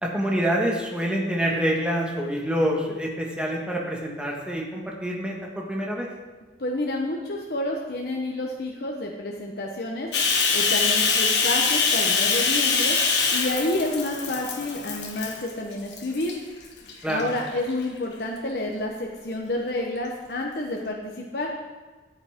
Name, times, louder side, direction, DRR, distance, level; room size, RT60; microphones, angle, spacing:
voice 1, 0.0-6.1 17.0-17.2, equal, 5° right, -2 dB, 1.5 m, -26 dB
voice 2, 6.6-10.1 10.5-13.0 13.3-16.3 17.1-21.5, left 1 dB, 60° left, -1 dB, 1.0 m, -29 dB
Bathtub (filling or washing), 10.1-15.5 15.9-16.3 16.9-17.7, left 5 dB, 75° left, 1.4 m, -23 dB
13.5 x 8.3 x 3.6 m, 1.3 s
head